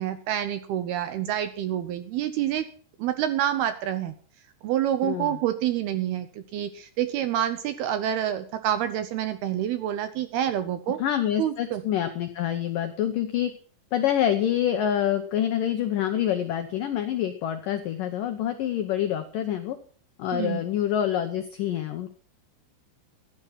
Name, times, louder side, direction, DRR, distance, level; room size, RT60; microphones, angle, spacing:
voice 1, 0.0-2.7 3.0-4.1 4.6-11.0 11.4-11.8 20.3-20.6, right 11 dB, 75° right, 11 dB, 2.4 m, -27 dB
voice 2, 5.0-5.4 11.0-13.5 13.9-19.8 20.2-22.1, left 10 dB, 80° left, 7 dB, 1.9 m, -26 dB
15.5 x 10.5 x 5.7 m, 0.43 s
omnidirectional pair, 5.3 m